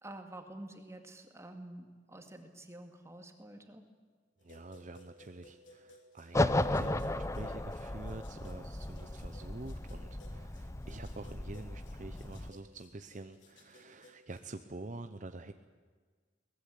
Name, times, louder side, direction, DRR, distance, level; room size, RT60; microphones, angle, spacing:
voice 1, 0.0-3.8, right 1 dB, 15° right, 5 dB, 2.1 m, -49 dB
sound 1, 4.4-14.4, left 2 dB, 85° left, 3.5 m, -60 dB
voice 2, 4.4-15.5, right 2 dB, 45° right, 8 dB, 0.8 m, -47 dB
sound 2, 6.3-12.5, left 1 dB, 15° left, 0.6 m, -35 dB
23.0 x 19.5 x 8.5 m, 1.5 s
head